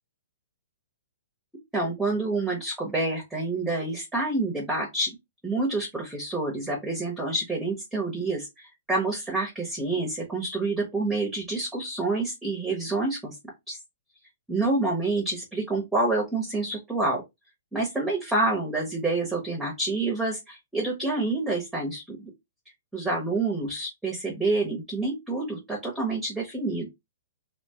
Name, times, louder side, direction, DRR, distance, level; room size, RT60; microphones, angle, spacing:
voice 1, 1.7-5.1 5.4-13.4 13.7-13.8 14.5-17.2 17.7-22.3 22.9-26.9, right 2 dB, 5° right, -1 dB, 0.8 m, -28 dB
2.9 x 2.2 x 2.8 m, 0.19 s
hypercardioid pair, 155°, 0 cm